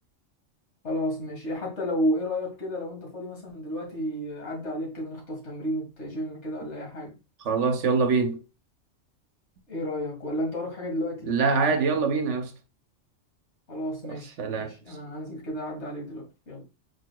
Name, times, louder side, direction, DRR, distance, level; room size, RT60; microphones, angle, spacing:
voice 1, 0.8-7.1 9.7-11.3 13.7-16.6, equal, 60° left, 2.2 m, -32 dB
voice 2, 7.4-8.4 11.3-12.5 14.1-15.0, right 4 dB, 70° right, 1.0 m, -25 dB
4.7 x 4.6 x 2.3 m
omnidirectional pair, 1.3 m